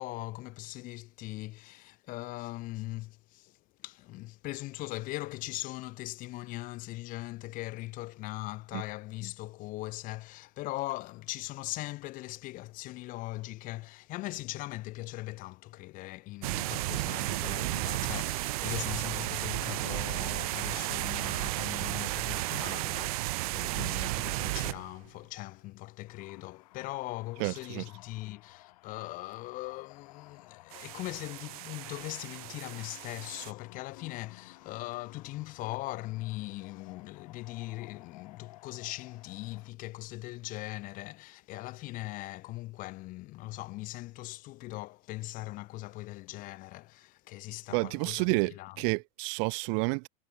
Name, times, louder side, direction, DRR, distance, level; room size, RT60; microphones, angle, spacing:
voice 1, 0.0-48.8, left 19 dB, 45° left, 2.6 m, -40 dB
sound 1, 16.4-24.9 30.7-33.5, right 22 dB, 75° right, 1.4 m, -33 dB
sound 2, 26.1-39.7, left 19 dB, 80° left, 2.7 m, -55 dB
voice 2, 27.4-27.8 47.7-50.1, right 40 dB or more, 60° right, 0.7 m, -30 dB
supercardioid pair, 145°, 19 cm